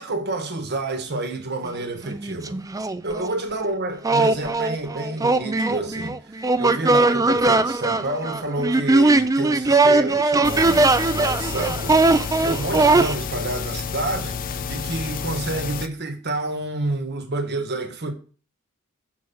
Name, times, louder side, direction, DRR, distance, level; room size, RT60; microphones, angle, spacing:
voice 1, 0.0-2.6 3.0-18.1, right 2 dB, 50° right, 1.3 m, -29 dB
sound 1, 1.7-1.8 2.0-3.3 4.0-13.1, right 3 dB, 15° right, 0.4 m, -19 dB
sound 2, 10.4-15.9, left 5 dB, 40° left, 0.5 m, -30 dB
7.2 x 4.6 x 6.9 m
head